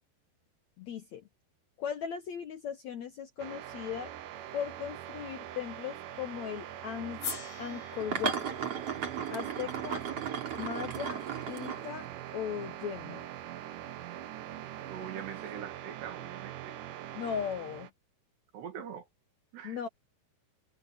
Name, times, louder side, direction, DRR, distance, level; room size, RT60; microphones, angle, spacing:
voice 1, 0.8-1.2 1.8-4.1 4.5-7.2 7.6-8.4 9.3-10.0 10.6-11.2 11.5-12.1 12.3-13.3 17.2-17.9 19.6-19.9, left 8 dB, 70° left, 1.7 m, -37 dB
sound 1, 3.4-17.9, right 12 dB, 65° right, 2.3 m, -43 dB
sound 2, 7.1-7.4 8.0-12.3 15.3-15.6, right 7 dB, 40° right, 3.9 m, -36 dB
sound 3, 7.2-11.4, left 6 dB, 85° left, 8.1 m, -45 dB
voice 2, 9.6-10.0 14.7-16.8 18.5-19.1 19.5-19.9, right 8 dB, 85° right, 4.6 m, -43 dB
omnidirectional pair, 4.7 m